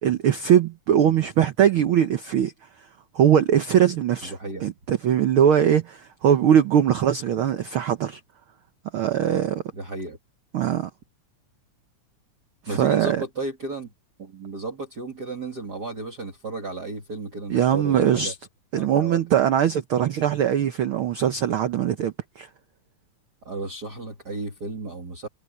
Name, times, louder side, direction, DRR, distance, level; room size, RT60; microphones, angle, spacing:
voice 1, 0.0-2.5 3.1-4.3 4.6-8.2 8.9-9.6 10.5-10.9 12.6-13.2 17.5-18.3 18.7-22.5, right 9 dB, 75° right, 1.2 m, -21 dB
voice 2, 4.2-4.7 9.7-10.2 12.7-13.9 14.2-18.3 18.8-19.4 23.4-25.3, right 3 dB, 35° right, 2.4 m, -33 dB
omnidirectional pair, 3.5 m